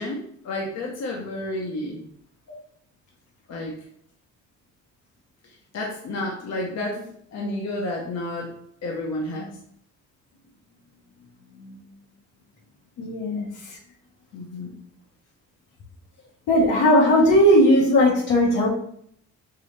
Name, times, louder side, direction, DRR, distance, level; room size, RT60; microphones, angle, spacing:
voice 1, 0.0-2.0 3.5-3.7 5.4-8.5 8.8-9.6 13.0-13.1 14.3-14.8, left 1 dB, 60° left, -1 dB, 0.9 m, -31 dB
voice 2, 13.0-13.4 16.5-18.7, equal, 85° left, -2 dB, 1.4 m, -17 dB
4.7 x 2.7 x 3.2 m, 0.67 s
cardioid pair, 90°, 30 cm